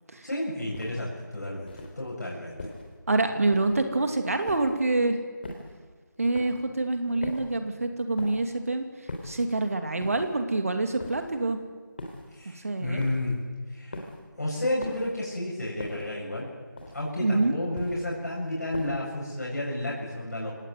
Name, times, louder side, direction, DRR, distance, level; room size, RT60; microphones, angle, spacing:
voice 1, 0.2-2.7 12.3-13.4 13.7-14.1 14.4-16.5 16.9-20.5, left 1 dB, 50° left, -4 dB, 7.9 m, -31 dB
sound 1, 0.7-1.1 1.7-2.0 2.6-3.0 3.5-3.9 4.5-4.9 5.4-5.8 6.3-6.7 7.2-7.6 8.2-8.5 9.1-9.5 10.0-10.4 11.0-11.4 12.0-12.4 13.0-13.4 13.9-14.3 14.8-15.2 15.8-16.2 16.8-17.2 17.7-18.2 18.7-19.2, left 2 dB, 30° left, 3.5 m, -41 dB
voice 2, 3.1-5.2 6.2-8.9 9.2-11.6 12.6-13.1 17.2-17.6, right 2 dB, 45° right, 6 dB, 2.7 m, -26 dB
28.0 x 17.5 x 9.4 m, 1.5 s
figure-of-eight pair, 165°, 11 cm